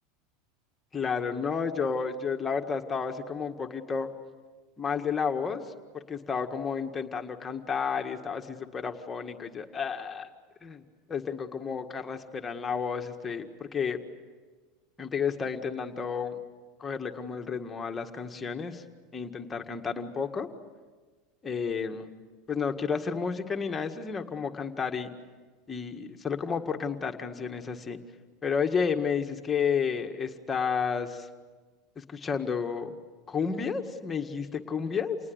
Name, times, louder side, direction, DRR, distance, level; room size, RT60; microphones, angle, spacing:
voice 1, 0.9-4.1 4.8-10.3 10.6-10.8 11.1-14.0 15.0-16.4 16.8-18.8 19.1-20.5 21.4-22.1 22.5-25.1 25.7-28.0 28.4-31.3 32.0-33.0 33.3-35.2, left 6 dB, 20° left, 4 dB, 1.8 m, -31 dB
28.5 x 19.5 x 8.1 m, 1.4 s
hypercardioid pair, 105°, 0 cm